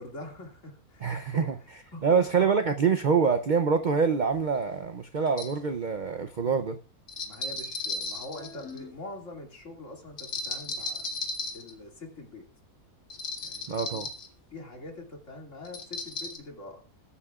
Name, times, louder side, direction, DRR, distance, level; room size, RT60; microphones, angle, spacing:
voice 1, 0.0-1.5 1.9-2.2 7.2-11.1 11.5-12.4 13.4-14.0 14.5-16.8, left 2 dB, 55° left, 1 dB, 2.7 m, -43 dB
voice 2, 1.0-1.6 2.0-6.8 13.7-14.1, right 5 dB, 55° right, 8 dB, 0.5 m, -25 dB
sound 1, 4.3-4.4 5.3-5.6 7.1-8.9 10.2-11.7 13.1-14.3 15.6-16.4, left 3 dB, 75° left, 1.9 m, -35 dB
21.0 x 8.4 x 2.4 m, 0.38 s
omnidirectional pair, 1.6 m